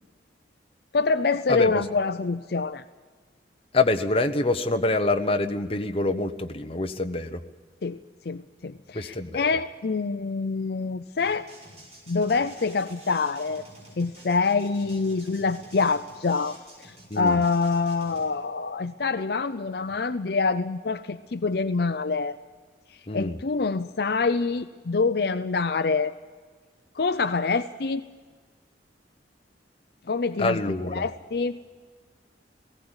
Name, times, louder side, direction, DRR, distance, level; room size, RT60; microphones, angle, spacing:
voice 1, 0.9-2.8 7.8-8.0 8.3-11.5 12.1-13.6 14.0-16.6 16.8-22.4 23.1-26.1 27.0-28.0 30.1-31.6, left 4 dB, 60° left, 11 dB, 0.5 m, -26 dB
voice 2, 1.5-1.8 3.7-7.4 8.9-9.5 17.1-17.4 23.1-23.4 30.4-31.1, left 2 dB, 30° left, 7 dB, 0.9 m, -26 dB
sound 1, 11.2-18.3, right 1 dB, 35° right, 5.9 m, -49 dB
18.5 x 17.0 x 8.8 m, 1.5 s
head